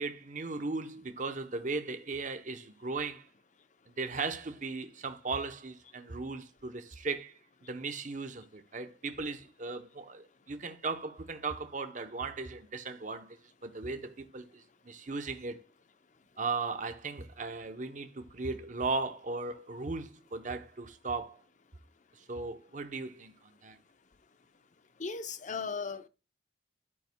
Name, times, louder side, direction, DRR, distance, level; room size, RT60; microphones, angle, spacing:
voice 1, 0.0-3.3 4.0-7.4 7.7-13.4 13.6-15.6 16.4-21.4 22.2-23.8, right 3 dB, 45° right, 0.8 m, -37 dB
voice 2, 25.0-26.1, left 5 dB, 45° left, 0.7 m, -36 dB
11.0 x 8.9 x 2.2 m
head